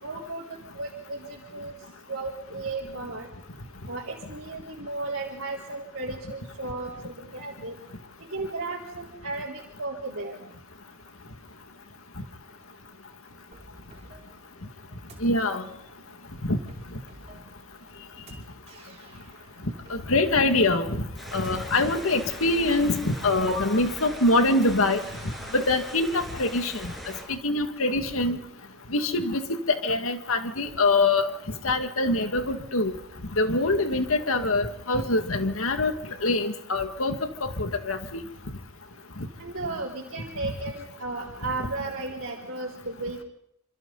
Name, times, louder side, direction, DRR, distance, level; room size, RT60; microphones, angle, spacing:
voice 1, 0.0-1.7 2.1-3.3 3.9-7.8 8.3-10.4 23.5-23.7 39.4-43.2, right 2 dB, 70° right, -5 dB, 4.1 m, -34 dB
sound 1, 13.5-26.2, right 1 dB, 30° right, 6.0 m, -52 dB
voice 2, 15.2-15.6 16.4-16.6 19.9-21.0 21.3-25.0 25.5-26.9 27.3-28.4 28.9-31.3 31.6-32.9 33.4-35.9 36.2-38.0, left 2 dB, 75° left, 6 dB, 2.1 m, -24 dB
sound 2, 21.2-27.2, equal, ahead, 7.1 m, -41 dB
27.0 x 26.5 x 4.1 m, 0.74 s
head